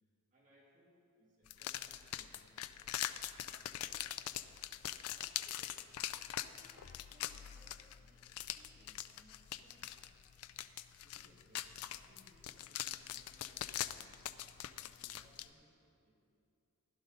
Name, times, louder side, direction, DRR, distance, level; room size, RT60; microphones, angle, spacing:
voice 1, 0.3-3.9 10.9-14.2 14.7-16.1, equal, 35° right, -5 dB, 2.6 m, -68 dB
sound 1, 1.5-15.5, left 12 dB, 80° left, 0.4 m, -43 dB
voice 2, 5.1-9.9, right 1 dB, 10° right, -8 dB, 2.0 m, -67 dB
15.5 x 11.5 x 4.0 m, 2.6 s
head